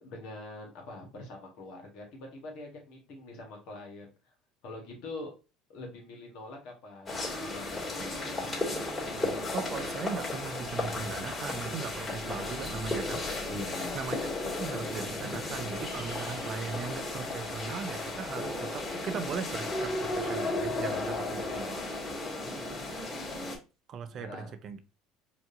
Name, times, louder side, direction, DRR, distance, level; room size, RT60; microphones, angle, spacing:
voice 1, 0.0-4.1 4.6-5.3 5.7-8.6 13.5-14.0 24.1-24.5, left 2 dB, 60° left, 1.4 m, -44 dB
sound 1, 7.1-23.6, left 2 dB, 20° left, 1.9 m, -34 dB
voice 2, 9.5-13.2 13.9-14.2 14.6-21.8 23.9-24.8, right 6 dB, 50° right, 0.5 m, -38 dB
4.7 x 2.6 x 2.6 m
hypercardioid pair, 70°, 0 cm